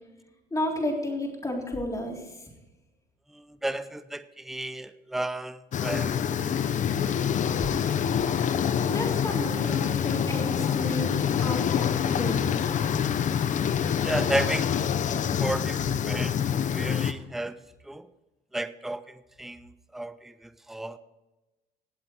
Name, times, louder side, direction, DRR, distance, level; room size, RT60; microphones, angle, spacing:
voice 1, 0.5-2.5 8.8-12.7, left 1 dB, 20° left, -1 dB, 3.7 m, -32 dB
voice 2, 3.3-6.9 7.6-7.8 14.0-14.8 15.4-16.4 16.7-18.1 18.5-21.0, right 1 dB, ahead, 13 dB, 0.6 m, -33 dB
sound 1, 5.7-17.1, left 8 dB, 45° left, 0.8 m, -26 dB
18.0 x 7.7 x 4.6 m, 1.1 s
cardioid pair, 110°, 17 cm